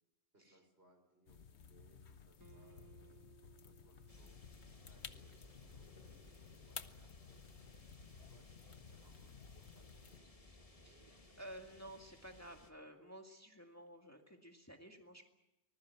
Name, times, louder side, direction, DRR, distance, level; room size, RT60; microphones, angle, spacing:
voice 1, 0.3-4.4 4.8-7.5 7.9-10.3 10.6-11.4, right 1 dB, 65° right, 4 dB, 5.9 m, -71 dB
sound 1, 1.3-10.2, left 6 dB, 75° left, 1.3 m, -55 dB
Acoustic guitar, 2.4-5.8, right 7 dB, 20° right, 0.9 m, -66 dB
sound 2, 4.1-12.7, left 2 dB, 30° left, 1.9 m, -61 dB
voice 2, 10.8-15.3, right 1 dB, 15° left, 3 dB, 2.1 m, -54 dB
25.0 x 20.5 x 8.3 m, 0.93 s
omnidirectional pair, 1.1 m